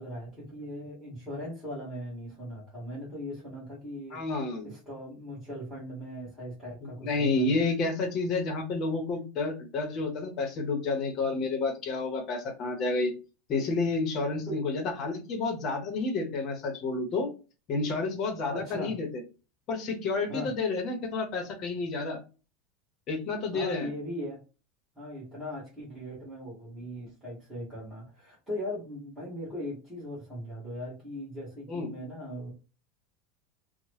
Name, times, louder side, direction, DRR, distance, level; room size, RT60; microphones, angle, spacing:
voice 1, 0.0-4.2 4.6-7.6 14.4-14.6 18.5-18.9 20.3-20.5 23.5-24.4 24.9-32.5, equal, 5° right, -9 dB, 1.1 m, -39 dB
voice 2, 4.1-4.7 6.8-13.1 13.5-17.3 17.7-19.1 19.7-22.2 23.1-23.9 31.7-31.9, left 3 dB, 35° left, 4 dB, 0.8 m, -30 dB
2.8 x 2.0 x 3.1 m, 0.33 s
supercardioid pair, 165°, 0 cm